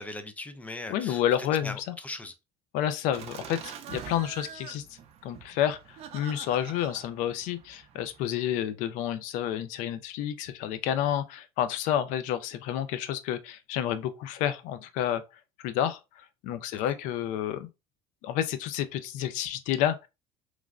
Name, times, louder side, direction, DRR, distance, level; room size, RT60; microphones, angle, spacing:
voice 1, 0.0-1.2 1.6-2.3 16.7-16.9, left 2 dB, 10° left, 0.4 m, -39 dB
voice 2, 0.9-1.8 2.7-15.2 15.6-17.7 18.2-20.1, left 11 dB, 75° left, 0.4 m, -30 dB
Laughter, 3.1-8.3, right 8 dB, 50° right, 0.5 m, -45 dB
3.1 x 2.5 x 2.3 m
cardioid pair, 115°, 13 cm